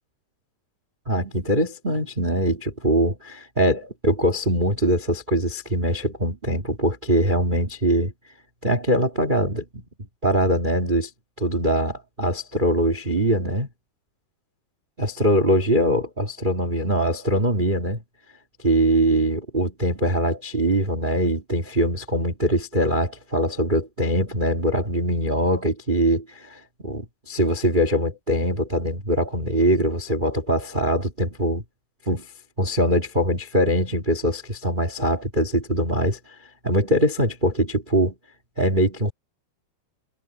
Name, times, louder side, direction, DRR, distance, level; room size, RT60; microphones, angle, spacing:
voice 1, 1.0-8.1 8.6-9.8 10.2-11.1 11.4-13.7 15.0-18.0 18.6-31.6 32.0-32.2 32.6-36.4 36.6-38.1 38.6-39.1, right 1 dB, 25° right, 1.1 m, -22 dB
omnidirectional pair, 4.6 m